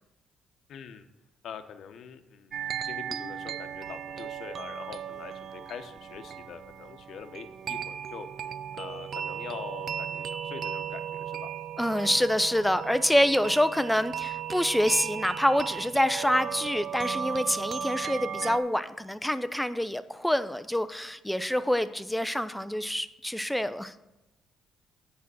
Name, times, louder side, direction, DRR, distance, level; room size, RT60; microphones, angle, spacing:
voice 1, 0.7-1.1 1.4-8.3 8.7-11.5, left 7 dB, 70° left, 9 dB, 0.8 m, -44 dB
sound 1, 2.5-18.6, right 8 dB, 55° right, 0.5 m, -36 dB
voice 2, 11.8-23.9, equal, 5° left, 12 dB, 0.5 m, -26 dB
8.3 x 5.8 x 7.5 m, 0.97 s
cardioid pair, 90°, 0 cm